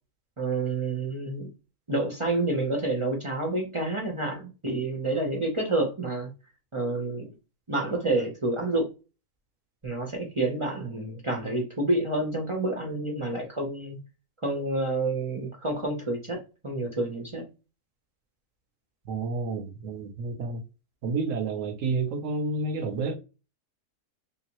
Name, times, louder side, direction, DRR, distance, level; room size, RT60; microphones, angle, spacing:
voice 1, 0.4-1.5 1.9-6.3 6.7-7.3 7.7-8.9 9.8-14.0 14.4-17.5, right 2 dB, 30° right, 0.6 m, -29 dB
voice 2, 19.1-20.6 21.0-23.2, right 3 dB, 60° right, 1.0 m, -30 dB
3.5 x 2.7 x 3.0 m
omnidirectional pair, 1.7 m